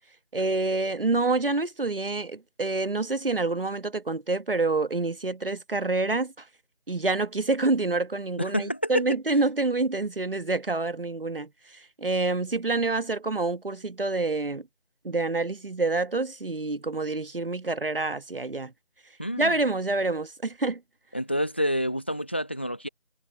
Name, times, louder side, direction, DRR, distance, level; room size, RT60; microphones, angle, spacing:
voice 1, 0.3-6.5 6.9-14.7 15.0-18.7 19.4-20.8, right 3 dB, 55° right, 1.4 m, -27 dB
voice 2, 8.4-8.9 19.2-19.5 21.1-22.9, equal, 10° left, 1.1 m, -28 dB
figure-of-eight pair, 165°, 32 cm